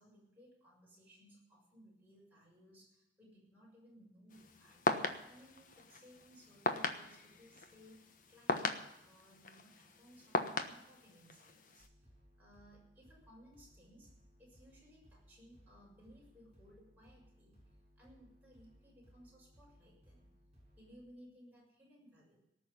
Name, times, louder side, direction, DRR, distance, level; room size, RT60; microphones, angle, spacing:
voice 1, 0.0-4.9 5.3-11.9 12.4-14.1 14.4-17.6 18.0-20.3 20.8-22.5, equal, 10° right, -4 dB, 6.6 m, -61 dB
sound 1, 4.3-11.9, left 3 dB, 50° left, 1.2 m, -39 dB
sound 2, 11.8-21.0, equal, 35° right, 6.6 m, -65 dB
18.5 x 6.5 x 9.5 m, 0.87 s
head